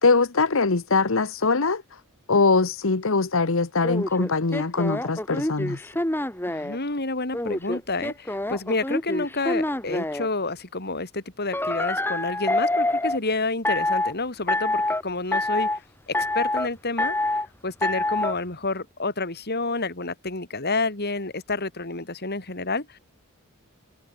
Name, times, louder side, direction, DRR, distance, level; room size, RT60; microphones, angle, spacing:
voice 1, 0.0-1.8 2.3-5.8, left 4 dB, 65° left, 1.1 m, -22 dB
sound 1, 3.8-6.8 7.3-10.3 11.5-13.2 13.7-14.1 14.5-15.0 15.3-15.8 16.1-16.7 17.0-17.5 17.8-18.3, left 2 dB, 10° left, 3.5 m, -26 dB
voice 2, 6.5-15.7 16.1-17.1 17.6-23.0, left 3 dB, 50° left, 3.9 m, -29 dB
head